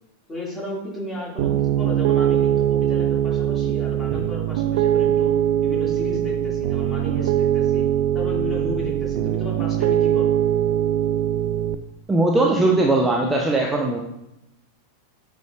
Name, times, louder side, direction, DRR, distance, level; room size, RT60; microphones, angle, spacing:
voice 1, 0.3-7.9 8.1-10.3, left 1 dB, 15° left, -3 dB, 2.2 m, -34 dB
Piano, 1.4-11.7, right 11 dB, 50° right, 0.3 m, -21 dB
voice 2, 12.1-14.0, right 2 dB, 10° right, 0 dB, 0.7 m, -19 dB
9.1 x 4.7 x 2.4 m, 0.88 s
figure-of-eight pair, 90°, 0 cm